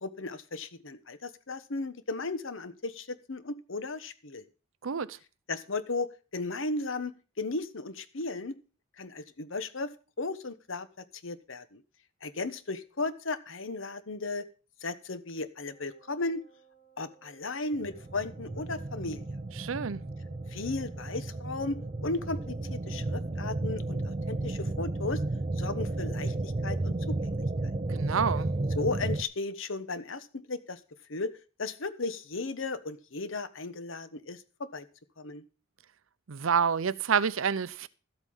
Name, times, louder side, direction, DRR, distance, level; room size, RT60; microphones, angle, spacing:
voice 1, 0.0-4.4 5.5-8.6 9.0-9.9 10.2-11.8 12.2-14.5 14.8-16.4 17.0-19.2 20.5-25.2 25.6-27.4 28.7-30.8 31.1-34.9 35.2-35.4, left 3 dB, 70° left, 1.1 m, -35 dB
voice 2, 4.8-5.2 19.6-20.0 27.9-28.5 36.3-37.9, right 6 dB, 75° right, 0.6 m, -28 dB
Wind instrument woodwind instrument, 15.6-23.8, right 8 dB, 25° left, 2.0 m, -60 dB
sound 1, 17.7-29.2, right 2 dB, 30° right, 0.5 m, -33 dB
13.0 x 8.2 x 5.6 m
head